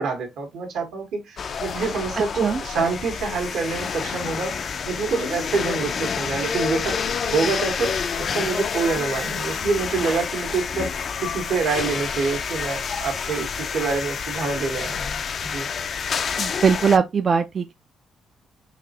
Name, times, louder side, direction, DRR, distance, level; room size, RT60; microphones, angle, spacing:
voice 1, 0.0-4.5 4.8-7.0 7.3-7.9 8.2-15.7, right 4 dB, 75° right, 1.4 m, -26 dB
sound 1, 1.4-17.0, left 6 dB, 50° left, 0.4 m, -28 dB
voice 2, 16.4-17.7, right 6 dB, 45° right, 0.4 m, -20 dB
4.0 x 3.2 x 2.8 m
cardioid pair, 90°, 0 cm